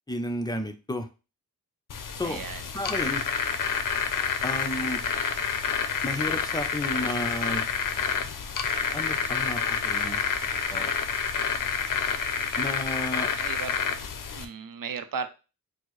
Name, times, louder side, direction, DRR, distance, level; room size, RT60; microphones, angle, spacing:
voice 1, 0.1-1.1 2.2-2.4 2.7-3.3 4.4-5.0 6.0-7.6 8.9-10.2 10.7-10.9 12.5-13.3, left 1 dB, 10° left, 6 dB, 0.6 m, -32 dB
sound 1, 1.9-14.5, left 6 dB, 55° left, 0.6 m, -28 dB
voice 2, 2.2-2.7 13.4-13.7 14.4-15.3, right 6 dB, 60° right, 10 dB, 0.6 m, -35 dB
4.3 x 2.1 x 3.1 m, 0.31 s
cardioid pair, 45°, 38 cm